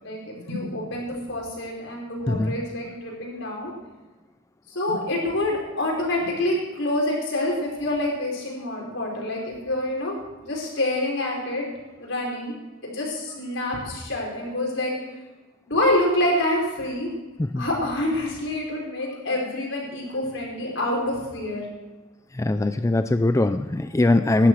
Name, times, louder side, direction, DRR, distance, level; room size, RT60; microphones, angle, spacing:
voice 1, 0.0-3.7 4.7-10.1 10.4-11.6 12.0-12.5 12.8-15.0 15.7-17.1 17.6-21.7, left 1 dB, 70° left, -2 dB, 5.3 m, -27 dB
voice 2, 22.4-24.5, left 2 dB, 15° left, 10 dB, 0.4 m, -21 dB
18.5 x 12.0 x 4.8 m, 1.2 s
head